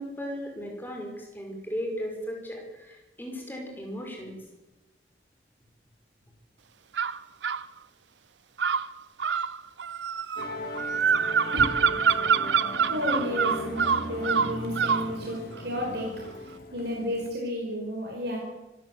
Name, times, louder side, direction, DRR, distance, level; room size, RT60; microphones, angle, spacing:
voice 1, 0.0-4.4, equal, 10° left, 1 dB, 5.5 m, -36 dB
sound 1, 7.0-7.6 8.6-15.1, right 6 dB, 90° right, 0.7 m, -25 dB
Musical instrument, 10.3-17.3, left 1 dB, 55° left, 4.0 m, -38 dB
voice 2, 12.9-16.1 16.4-18.4, equal, 70° right, -2 dB, 5.4 m, -32 dB
25.0 x 14.5 x 8.0 m, 1.0 s
head